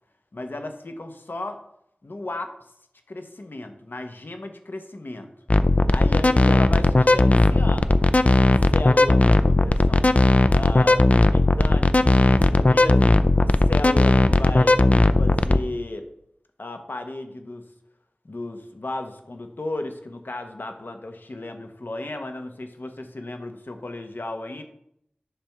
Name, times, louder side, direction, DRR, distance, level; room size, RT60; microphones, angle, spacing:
voice 1, 0.3-1.6 2.0-2.5 3.1-5.3 5.9-7.9 8.7-10.2 10.5-13.1 13.4-14.8 15.2-16.1 16.6-17.6 18.2-24.6, left 2 dB, 75° left, 6 dB, 0.9 m, -34 dB
sound 1, 5.5-15.6, left 2 dB, 45° left, 0.4 m, -17 dB
10.0 x 3.4 x 5.9 m, 0.75 s
wide cardioid pair, 45°, 3 cm